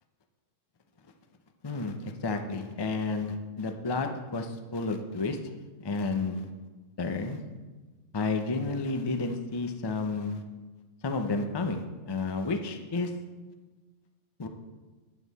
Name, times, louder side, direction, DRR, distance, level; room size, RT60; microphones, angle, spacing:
voice 1, 1.6-5.4 5.8-6.5 7.0-7.4 8.1-10.4 11.0-13.1 14.4-14.5, left 3 dB, 30° left, 6 dB, 0.4 m, -31 dB
9.1 x 8.2 x 4.1 m, 1.3 s
omnidirectional pair, 1.3 m